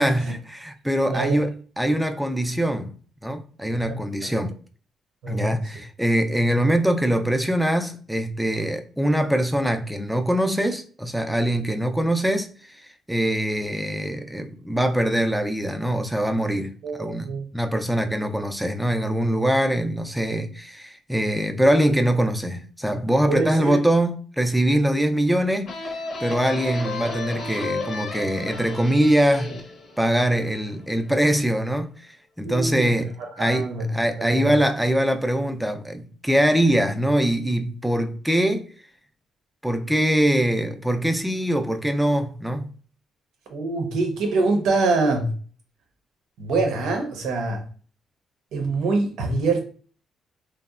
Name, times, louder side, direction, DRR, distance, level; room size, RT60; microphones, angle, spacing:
voice 1, 0.0-2.9 3.2-4.5 5.3-16.7 17.0-17.3 17.5-29.6 30.0-38.7 39.6-42.7, right 1 dB, ahead, 0.3 m, -23 dB
voice 2, 1.1-1.4 3.6-4.4 5.2-5.6 16.8-17.5 23.3-23.8 32.4-32.9 33.4-33.9 34.2-34.5 43.5-45.3 46.4-47.6 48.5-49.7, right 3 dB, 85° right, 0.6 m, -25 dB
sound 1, 25.7-31.1, left 3 dB, 60° left, 0.7 m, -33 dB
2.9 x 2.0 x 2.3 m
cardioid pair, 90°, 0 cm